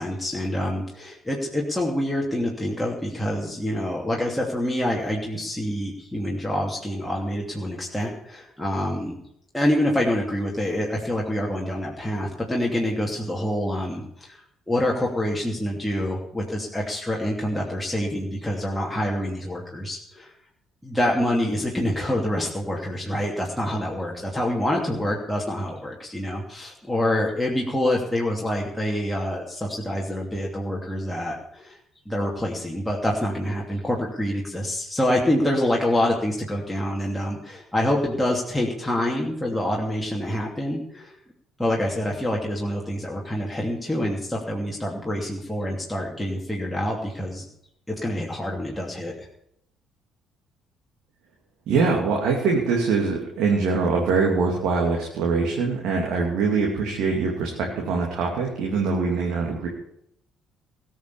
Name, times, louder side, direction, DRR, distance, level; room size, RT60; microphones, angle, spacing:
voice 1, 0.0-9.2 9.5-14.4 14.7-20.3 20.8-31.8 32.1-41.1 41.6-47.4 47.9-49.3, left 1 dB, 5° left, -3 dB, 2.8 m, -26 dB
voice 2, 51.7-59.7, right 4 dB, 55° right, -1 dB, 2.6 m, -23 dB
19.0 x 6.5 x 7.1 m, 0.73 s
figure-of-eight pair, 45°, 0 cm